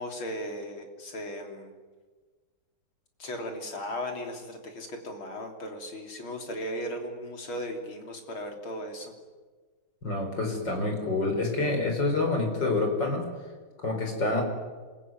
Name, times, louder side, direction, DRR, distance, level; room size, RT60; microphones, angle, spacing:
voice 1, 0.0-1.7 3.2-9.1, equal, 70° left, 3 dB, 4.2 m, -37 dB
voice 2, 10.0-13.3 13.8-14.4, left 2 dB, 55° left, 3 dB, 5.9 m, -27 dB
27.0 x 21.5 x 9.4 m, 1.4 s
omnidirectional pair, 2.3 m